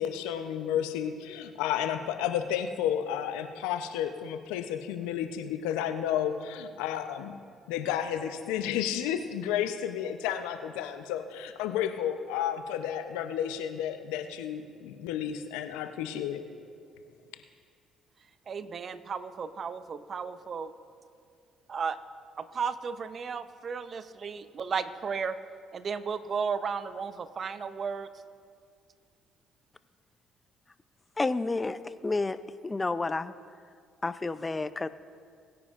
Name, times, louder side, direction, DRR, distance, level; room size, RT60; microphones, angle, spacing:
voice 1, 0.0-7.3 7.7-16.5, left 9 dB, 80° left, 8 dB, 0.7 m, -32 dB
voice 2, 18.5-20.7 21.7-22.0 22.4-25.4 25.7-28.1, right 6 dB, 50° right, 12 dB, 0.7 m, -34 dB
voice 3, 31.2-32.4 32.6-33.3 34.0-34.9, left 3 dB, 25° left, 14 dB, 0.5 m, -30 dB
21.5 x 9.6 x 2.5 m, 2.2 s
hypercardioid pair, 55°, 0 cm